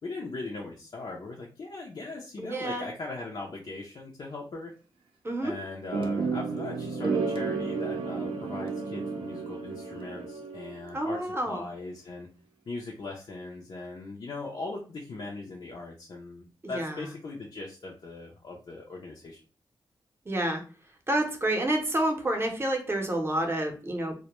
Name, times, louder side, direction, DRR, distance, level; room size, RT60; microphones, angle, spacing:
voice 1, 0.0-4.7 5.4-12.3 12.7-19.4, left 3 dB, 55° left, -1 dB, 0.5 m, -39 dB
voice 2, 2.4-2.8 5.2-5.5 10.9-11.7 16.7-17.0 20.3-20.6 21.1-24.1, right 1 dB, 25° right, 3 dB, 0.7 m, -28 dB
sound 1, 5.9-11.0, right 4 dB, 80° right, 0.5 m, -32 dB
2.1 x 2.1 x 2.9 m, 0.36 s
cardioid pair, 70°, 9 cm